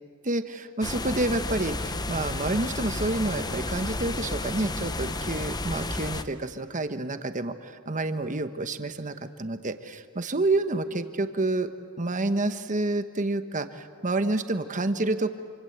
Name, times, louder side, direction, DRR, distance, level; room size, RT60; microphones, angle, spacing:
voice 1, 0.2-11.7 12.0-15.3, right 2 dB, 35° right, 9 dB, 1.2 m, -29 dB
sound 1, 0.8-6.2, left 2 dB, 20° left, 0.9 m, -32 dB
26.5 x 25.5 x 8.0 m, 2.2 s
head